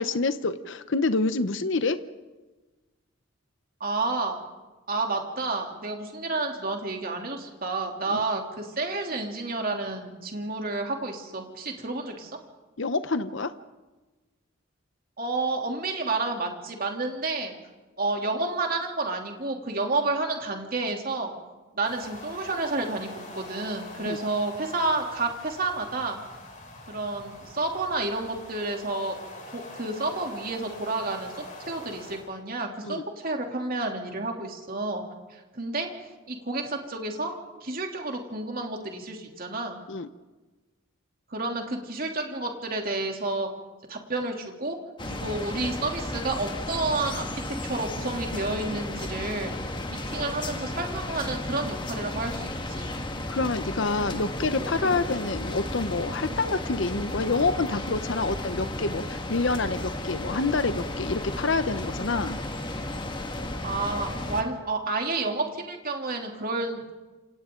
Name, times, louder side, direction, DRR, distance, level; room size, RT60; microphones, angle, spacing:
voice 1, 0.0-2.0 8.1-8.2 12.8-13.5 24.1-24.2 32.8-33.0 39.9-40.1 53.3-62.4, left 3 dB, 60° left, 11 dB, 0.9 m, -27 dB
voice 2, 3.8-4.4 4.9-12.4 15.2-17.5 18.0-21.3 21.7-26.2 26.9-29.2 29.5-31.3 31.6-35.0 35.3-35.9 36.3-37.3 37.6-39.8 41.3-43.5 43.9-44.8 45.1-49.5 49.9-52.9 63.6-66.9, right 3 dB, 45° right, 2 dB, 3.1 m, -30 dB
sound 1, 21.8-32.3, left 1 dB, 40° left, 6.6 m, -44 dB
sound 2, 45.0-64.4, left 1 dB, 25° left, 1.8 m, -34 dB
29.0 x 27.5 x 3.9 m, 1.2 s
head